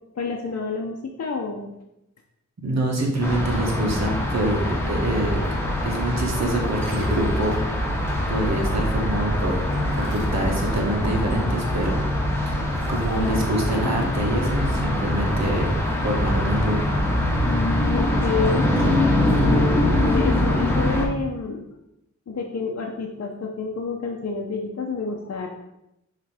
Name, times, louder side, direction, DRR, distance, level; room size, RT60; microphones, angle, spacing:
voice 1, 0.2-1.7 17.4-18.7 19.4-21.7 22.3-25.5, left 4 dB, 60° left, 0 dB, 0.8 m, -29 dB
voice 2, 2.6-5.4 5.8-8.0 8.3-9.6 10.0-12.0 12.4-15.8 16.0-16.9, right 1 dB, 65° right, 0 dB, 1.6 m, -25 dB
sound 1, 3.2-21.1, left 1 dB, 10° left, 1.5 m, -23 dB
sound 2, 6.7-7.7 9.2-11.5 11.8-11.9 12.7-13.6 16.1-17.1 18.4-19.0, right 1 dB, 40° right, 1.9 m, -42 dB
5.8 x 3.3 x 4.9 m, 0.86 s
cardioid pair, 55°, 30 cm